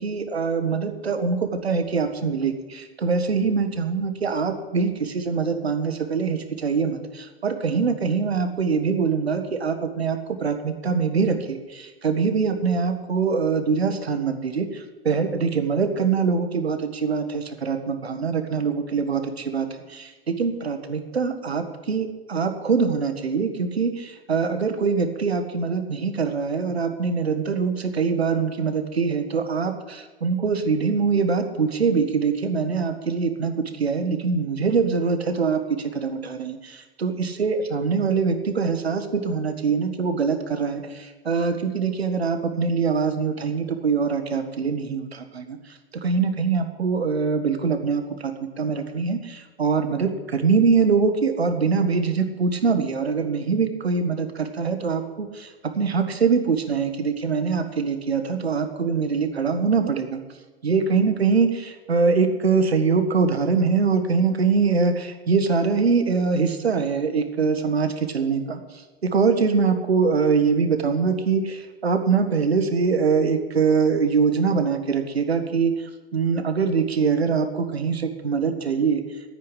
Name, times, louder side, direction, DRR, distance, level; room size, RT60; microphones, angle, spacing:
voice 1, 0.0-60.2 60.6-68.6 69.0-79.0, right 5 dB, 75° right, 8 dB, 1.7 m, -23 dB
9.9 x 9.3 x 10.0 m, 1.2 s
figure-of-eight pair, 95°, 31 cm